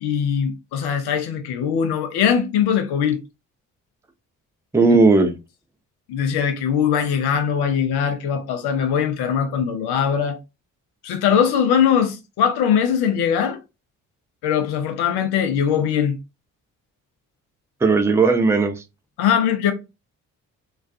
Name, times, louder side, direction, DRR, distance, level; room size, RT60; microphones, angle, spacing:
voice 1, 0.0-3.2 6.1-10.4 11.0-13.6 14.4-16.2 19.2-19.7, left 8 dB, 70° left, 0.7 m, -21 dB
voice 2, 4.7-5.3 17.8-18.8, right 3 dB, 5° right, 0.5 m, -16 dB
2.4 x 2.3 x 2.4 m
hypercardioid pair, 40°, 41 cm